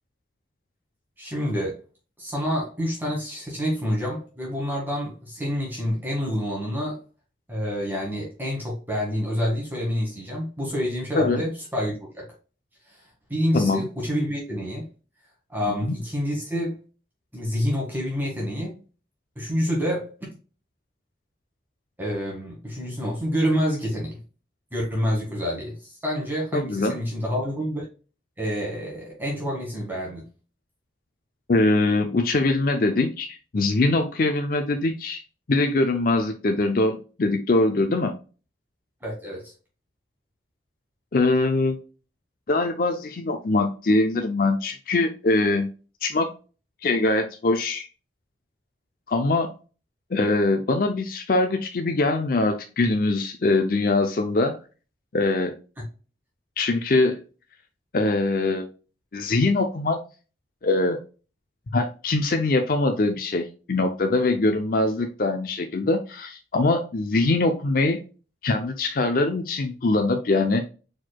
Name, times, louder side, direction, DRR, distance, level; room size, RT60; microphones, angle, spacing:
voice 1, 1.2-1.8 2.2-7.0 7.5-12.3 13.3-14.9 15.5-16.7 17.3-18.8 19.4-20.1 22.0-24.2 24.7-27.9 28.4-30.2 39.0-39.5, equal, 10° right, -4 dB, 1.7 m, -27 dB
voice 2, 13.5-13.9 15.8-16.0 26.5-27.0 31.5-35.2 35.5-38.1 41.1-41.8 42.5-45.7 46.0-46.3 46.8-47.9 49.1-49.5 50.1-54.6 55.1-55.5 56.6-57.2 57.9-58.7 59.1-60.0 60.6-61.0 61.7-68.0 68.4-70.7, left 2 dB, 50° left, 5 dB, 0.5 m, -22 dB
4.5 x 4.4 x 2.2 m, 0.34 s
head